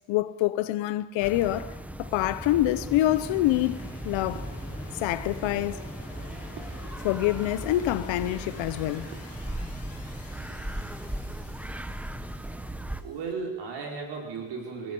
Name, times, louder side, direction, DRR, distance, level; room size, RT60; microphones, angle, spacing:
voice 1, 0.1-1.7 2.0-3.8 4.0-4.5 4.9-5.8 7.0-9.1, left 15 dB, 65° left, 0.9 m, -26 dB
sound 1, 1.2-13.0, right 1 dB, 5° right, 0.7 m, -37 dB
sound 2, 3.1-13.3, left 4 dB, 30° left, 7.3 m, -49 dB
sound 3, 4.3-5.1 5.4-7.3 7.6-8.5 9.1-9.7 10.0-10.1 10.3-11.1, right 8 dB, 85° right, 3.3 m, -52 dB
voice 2, 13.0-14.9, right 5 dB, 55° right, 5.0 m, -35 dB
27.5 x 18.5 x 5.5 m
cardioid pair, 145°, 49 cm